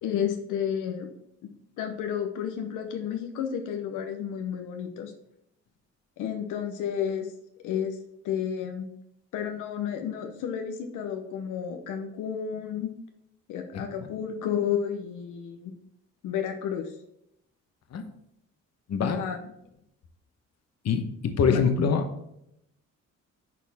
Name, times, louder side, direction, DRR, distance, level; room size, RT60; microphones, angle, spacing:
voice 1, 0.0-1.1 1.8-5.1 6.2-7.3 7.6-8.0 8.2-8.9 9.3-12.9 13.5-15.7 16.2-16.9 19.0-19.5 21.5-21.6, left 8 dB, 90° left, 4 dB, 0.9 m, -31 dB
voice 2, 18.9-19.2 20.8-22.1, left 6 dB, 60° left, 7 dB, 1.1 m, -24 dB
10.5 x 4.1 x 3.5 m, 0.78 s
cardioid pair, 90°, 30 cm